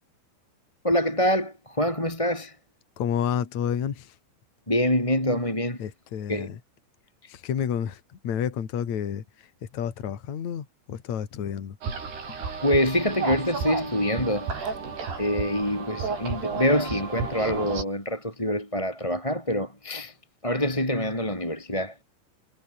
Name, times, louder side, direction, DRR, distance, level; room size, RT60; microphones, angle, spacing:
voice 1, 0.8-2.6 4.7-5.8 6.3-6.5 12.6-14.7 15.2-20.1 20.4-22.0, left 1 dB, 5° left, 3.9 m, -25 dB
voice 2, 3.0-4.1 5.8-6.6 7.3-9.2 9.7-11.8 12.3-12.4, left 8 dB, 45° left, 3.2 m, -30 dB
sound 1, 11.8-17.8, right 5 dB, 55° right, 8.2 m, -32 dB
omnidirectional pair, 5.6 m